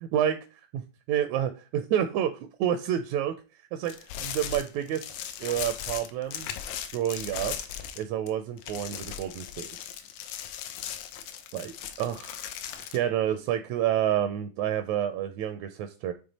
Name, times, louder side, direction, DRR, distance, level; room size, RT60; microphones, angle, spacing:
voice 1, 0.0-0.8 1.1-2.3 2.6-3.4 3.7-5.1 5.4-6.5 6.9-7.6 8.0-9.7 11.5-12.4 12.9-16.1, right 10 dB, 80° right, 9 dB, 1.8 m, -29 dB
sound 1, 3.9-8.3 8.6-13.0, left 9 dB, 85° left, 2.0 m, -38 dB
8.6 x 3.3 x 4.0 m, 0.35 s
omnidirectional pair, 3.4 m